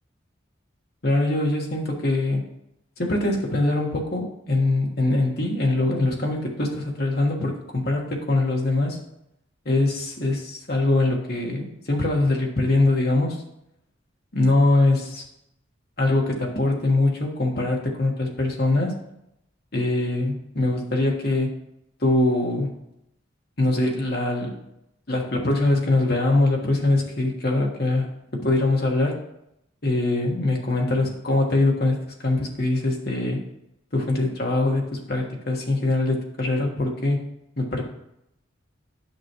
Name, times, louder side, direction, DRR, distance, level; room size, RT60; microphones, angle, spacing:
voice 1, 1.0-2.4 3.0-9.0 9.6-13.4 14.3-15.2 16.0-18.9 19.7-21.5 22.0-22.7 23.6-24.6 25.1-28.1 28.4-29.2 29.8-32.0 32.2-33.4 33.9-37.2 37.6-37.8, left 2 dB, 50° left, 0 dB, 1.4 m, -23 dB
10.5 x 6.0 x 3.0 m, 0.80 s
head